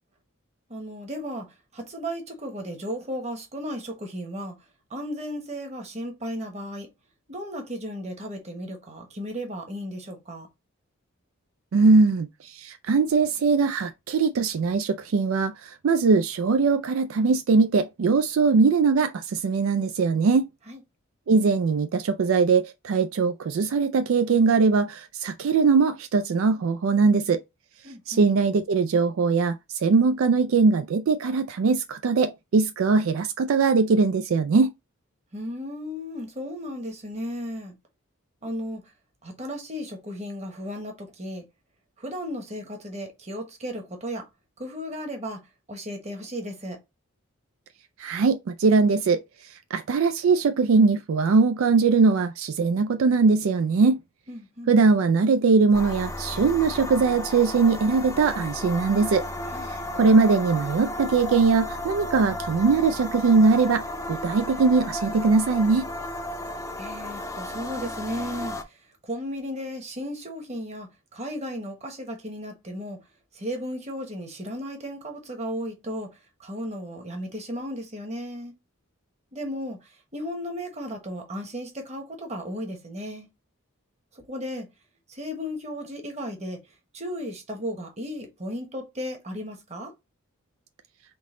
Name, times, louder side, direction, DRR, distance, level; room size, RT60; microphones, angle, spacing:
voice 1, 0.7-4.5 4.9-6.9 7.3-10.5 20.7-20.8 27.8-28.3 35.3-37.7 38.4-38.9 39.2-41.4 42.0-44.3 44.6-45.4 45.7-46.8 54.3-54.7 59.5-59.7 66.8-73.0 73.3-76.1 76.4-78.5 79.3-83.3 84.1-84.7 85.1-86.6 86.9-89.9, equal, 30° right, 1.2 m, -35 dB
voice 2, 11.7-20.5 21.3-27.4 28.1-34.7 48.0-54.0 54.7-59.3 59.7-65.9, right 4 dB, 70° right, 0.4 m, -21 dB
sound 1, 55.7-68.6, left 1 dB, 15° left, 0.5 m, -34 dB
3.8 x 3.6 x 3.7 m
head